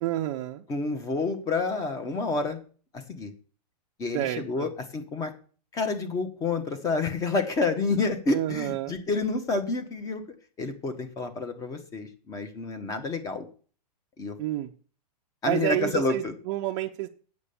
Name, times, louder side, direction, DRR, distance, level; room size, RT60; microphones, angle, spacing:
voice 1, 0.0-0.6 4.1-4.7 8.3-9.0 14.4-14.7 15.4-17.1, right 15 dB, 30° right, 1 dB, 0.7 m, -29 dB
voice 2, 0.7-2.6 2.9-3.3 4.0-5.3 5.7-10.2 10.6-13.4 14.2-14.4 15.4-16.3, left 3 dB, 15° left, 9 dB, 1.1 m, -29 dB
8.5 x 6.6 x 7.0 m, 0.41 s
hypercardioid pair, 155°, 21 cm